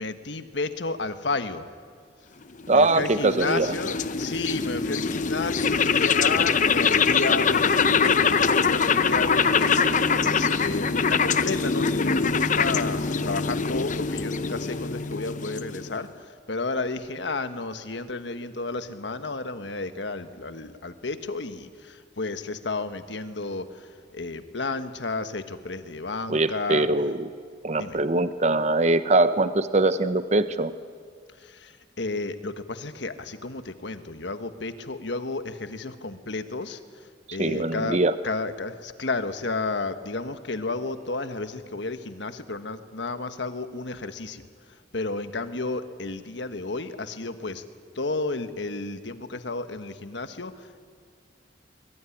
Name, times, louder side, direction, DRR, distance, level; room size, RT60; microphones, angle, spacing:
voice 1, 0.0-1.7 2.7-26.9 27.8-28.0 31.4-38.0 38.2-47.6 47.9-50.8, left 3 dB, 75° left, 10 dB, 1.4 m, -32 dB
sound 1, 2.6-16.0, left 5 dB, 45° left, 0.8 m, -23 dB
voice 2, 2.7-3.7 26.3-27.3 27.6-30.7 37.3-38.1, right 2 dB, 40° right, 12 dB, 0.7 m, -22 dB
23.5 x 22.5 x 10.0 m, 2.1 s
head